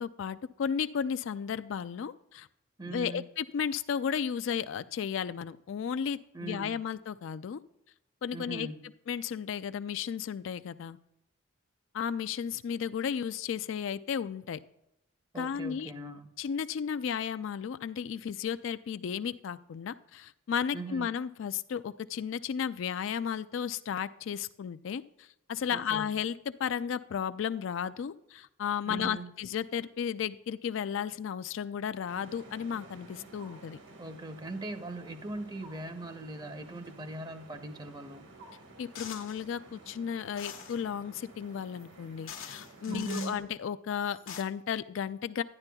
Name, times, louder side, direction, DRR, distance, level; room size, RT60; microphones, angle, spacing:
voice 1, 0.0-2.5 2.9-7.6 8.2-8.7 9.1-11.0 11.9-14.6 15.4-15.9 16.4-33.8 38.8-45.4, left 7 dB, 65° left, 12 dB, 0.3 m, -34 dB
voice 2, 2.8-3.3 6.3-6.8 8.3-8.9 15.3-16.3 20.7-21.1 25.7-26.1 28.9-29.3 34.0-38.2 42.9-43.3, right 2 dB, 20° right, 8 dB, 0.6 m, -40 dB
sound 1, 32.1-43.4, right 2 dB, 65° right, 1.3 m, -53 dB
sound 2, 39.0-39.4 40.4-40.8 41.8-41.9 42.3-43.4 44.0-44.4, left 8 dB, 85° left, 1.0 m, -44 dB
12.0 x 9.7 x 2.3 m, 0.83 s
head